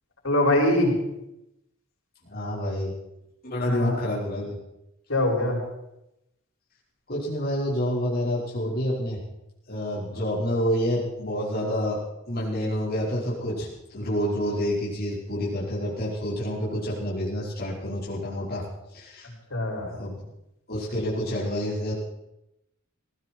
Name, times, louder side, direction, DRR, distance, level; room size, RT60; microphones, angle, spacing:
voice 1, 0.2-0.9 3.6-4.0 5.1-5.6 10.1-10.2 19.5-19.9, left 1 dB, 90° left, -3 dB, 7.1 m, -23 dB
voice 2, 2.2-2.9 3.4-4.6 7.1-9.2 9.7-12.0 12.3-19.3 19.9-20.2 20.7-21.9, equal, 50° left, -7 dB, 5.1 m, -28 dB
19.5 x 16.0 x 4.7 m, 0.88 s
head